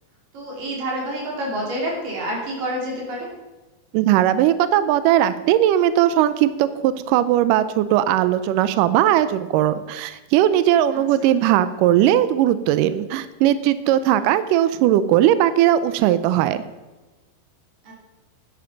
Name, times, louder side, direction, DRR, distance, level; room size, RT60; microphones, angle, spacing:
voice 1, 0.3-3.3 10.9-11.0 14.2-14.3 17.8-17.9, right 1 dB, 60° right, -2 dB, 5.0 m, -28 dB
voice 2, 3.9-16.6, right 12 dB, 80° right, 14 dB, 1.9 m, -18 dB
12.5 x 10.5 x 5.8 m, 1.1 s
omnidirectional pair, 4.3 m